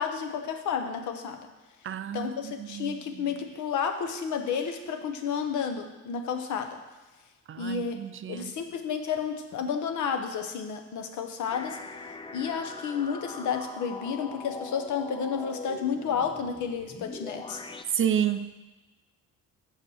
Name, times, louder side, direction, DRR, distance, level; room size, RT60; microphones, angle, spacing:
voice 1, 0.0-1.5 2.1-6.8 7.6-11.8 12.3-17.6, left 6 dB, 75° left, 6 dB, 0.9 m, -31 dB
voice 2, 1.8-3.0 7.5-8.5 17.9-18.6, right 9 dB, 45° right, 10 dB, 0.5 m, -30 dB
sound 1, 11.5-17.8, left 3 dB, 15° left, 0.5 m, -42 dB
6.2 x 5.2 x 6.4 m, 1.2 s
cardioid pair, 90°, 30 cm